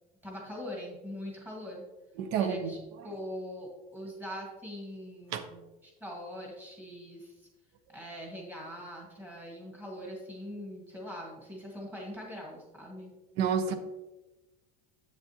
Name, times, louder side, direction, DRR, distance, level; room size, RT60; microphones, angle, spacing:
voice 1, 0.2-1.8 2.3-2.8 3.0-7.5 7.9-13.1, left 1 dB, 10° right, -2 dB, 1.7 m, -42 dB
voice 2, 2.2-2.8 5.3-5.4 13.4-13.7, right 7 dB, 60° right, 10 dB, 0.8 m, -29 dB
8.3 x 7.2 x 2.9 m, 1.1 s
cardioid pair, 175°, 20 cm